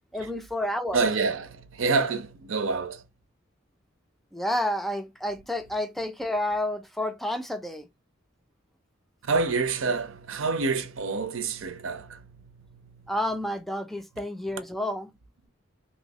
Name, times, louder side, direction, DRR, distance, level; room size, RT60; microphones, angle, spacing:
voice 1, 0.1-1.1 4.3-7.9 13.1-15.1, left 1 dB, ahead, 0.4 m, -30 dB
voice 2, 0.9-3.0 9.2-13.0, right 4 dB, 80° right, 0.7 m, -28 dB
3.1 x 2.9 x 2.8 m
head